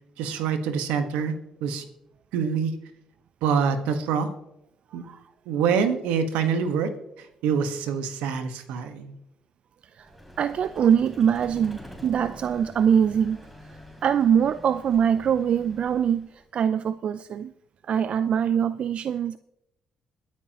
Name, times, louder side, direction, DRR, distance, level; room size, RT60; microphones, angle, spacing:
voice 1, 0.2-1.8 2.3-2.7 3.4-4.3 4.9-5.0 5.5-9.1, right 6 dB, 85° right, 8 dB, 1.4 m, -26 dB
Vehicle, 10.0-16.4, equal, 5° right, 3.6 m, -46 dB
voice 2, 10.4-13.5 14.0-17.5 17.8-19.4, right 8 dB, 60° right, 14 dB, 0.4 m, -23 dB
22.5 x 9.3 x 3.0 m, 0.83 s
supercardioid pair, 60°, 2 cm